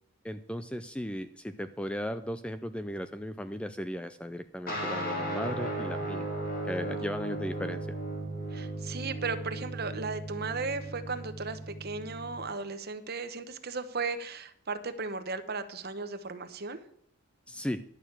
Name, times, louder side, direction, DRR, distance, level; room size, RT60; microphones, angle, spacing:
voice 1, 0.2-6.3 6.6-7.9 17.5-17.8, equal, 5° left, 10 dB, 0.3 m, -36 dB
sound 1, 4.7-12.5, right 1 dB, 40° left, 2.9 m, -36 dB
voice 2, 8.5-16.8, right 4 dB, 45° right, 10 dB, 1.0 m, -36 dB
11.0 x 6.6 x 7.4 m, 0.69 s
head